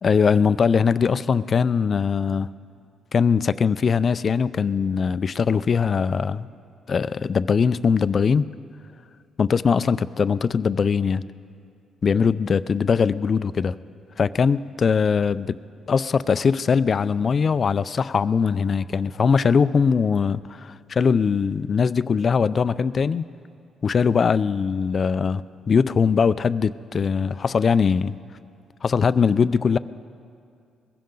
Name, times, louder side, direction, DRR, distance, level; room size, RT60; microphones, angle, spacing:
voice 1, 0.0-2.5 3.1-6.5 6.9-8.5 9.4-11.2 12.0-13.8 14.2-15.6 15.9-23.3 23.8-25.4 25.7-28.2 28.8-29.8, left 6 dB, 45° left, 15 dB, 0.4 m, -21 dB
21.5 x 16.0 x 3.9 m, 2.4 s
cardioid pair, 90°, 0 cm